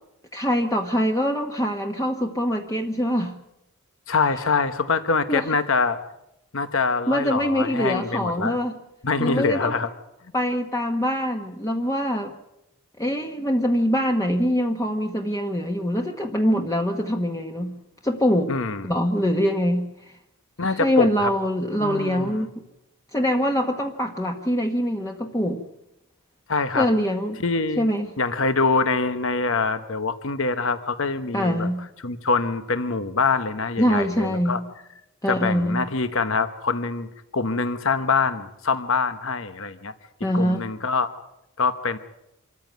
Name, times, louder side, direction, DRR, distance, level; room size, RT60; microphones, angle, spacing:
voice 1, 0.3-3.3 5.3-5.5 7.1-8.8 9.2-9.7 10.3-12.3 13.0-17.7 18.0-18.5 18.8-20.1 20.6-22.6 23.1-25.6 26.7-27.4 27.8-28.1 31.3-31.8 33.8-34.6 35.2-35.8 40.2-40.7, equal, 15° left, 3 dB, 1.3 m, -24 dB
voice 2, 4.1-6.0 6.5-8.6 9.0-9.9 18.5-18.9 20.6-21.3 21.8-22.5 26.5-26.9 27.4-27.8 28.2-31.7 32.0-34.6 35.3-37.1 37.3-39.9 40.3-41.1 41.6-42.0, left 4 dB, 60° left, 10 dB, 1.1 m, -24 dB
26.5 x 14.5 x 9.4 m, 0.87 s
head